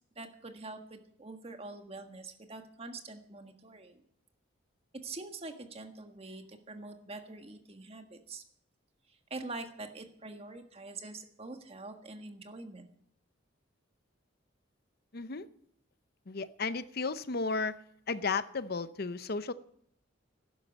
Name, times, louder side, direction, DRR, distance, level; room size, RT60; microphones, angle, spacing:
voice 1, 0.1-4.0 4.9-8.4 9.1-12.9, right 3 dB, 30° right, 1.6 m, -45 dB
voice 2, 15.1-15.5 16.3-17.8 18.1-19.5, left 4 dB, 50° left, 0.7 m, -34 dB
12.5 x 11.5 x 8.1 m
head